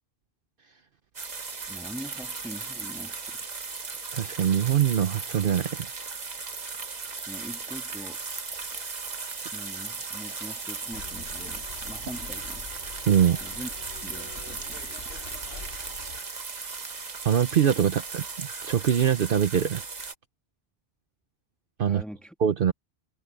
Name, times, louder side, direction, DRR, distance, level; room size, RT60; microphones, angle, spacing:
sound 1, 1.1-20.1, right 4 dB, 40° right, 1.2 m, -37 dB
voice 1, 1.7-3.4 7.3-8.3 9.5-12.7 13.4-13.7 14.0-14.8 21.9-22.3, equal, ahead, 1.6 m, -42 dB
voice 2, 4.1-5.9 13.1-13.4 17.2-19.8 21.8-22.0 22.4-22.7, right 9 dB, 60° right, 0.9 m, -23 dB
Bus, 10.9-16.2, left 4 dB, 65° left, 1.5 m, -44 dB
omnidirectional pair, 1.1 m